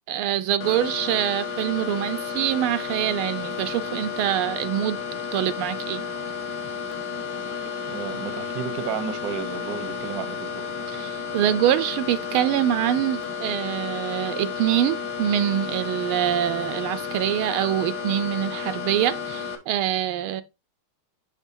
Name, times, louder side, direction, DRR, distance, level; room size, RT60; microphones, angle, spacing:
voice 1, 0.1-5.0 5.3-6.0 10.9-20.4, right 11 dB, 80° right, 1.4 m, -25 dB
sound 1, 0.6-19.6, left 6 dB, 50° left, 1.6 m, -32 dB
voice 2, 7.9-10.5, right 8 dB, 60° right, 1.1 m, -32 dB
11.0 x 3.8 x 2.6 m
omnidirectional pair, 2.4 m